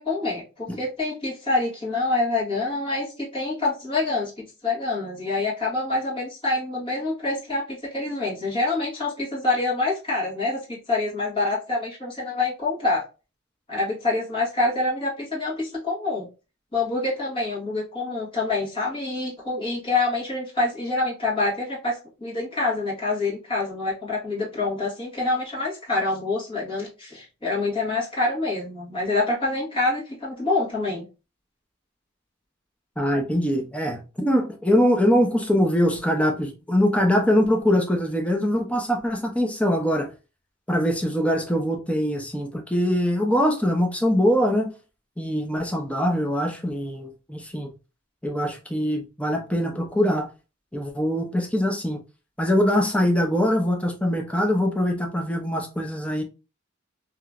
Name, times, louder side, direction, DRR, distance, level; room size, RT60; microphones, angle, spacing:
voice 1, 0.0-13.0 13.7-16.3 16.7-31.0, left 2 dB, 25° left, 1.7 m, -26 dB
voice 2, 33.0-40.1 40.7-44.7 45.2-47.7 48.2-50.3 50.7-52.0 52.4-56.2, equal, 5° left, 0.6 m, -23 dB
3.1 x 2.9 x 2.4 m
head